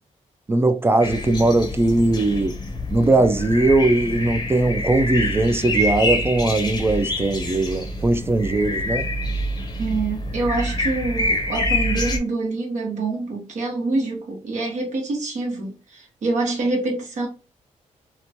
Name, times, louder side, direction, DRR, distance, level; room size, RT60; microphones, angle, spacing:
voice 1, 0.5-2.6 2.9-9.1, right 2 dB, 20° right, 0.3 m, -19 dB
sound 1, 1.0-12.2, left 1 dB, 30° left, 0.6 m, -26 dB
voice 2, 9.8-17.3, right 3 dB, 65° right, 1.0 m, -26 dB
2.9 x 2.1 x 2.7 m
cardioid pair, 105°, 13 cm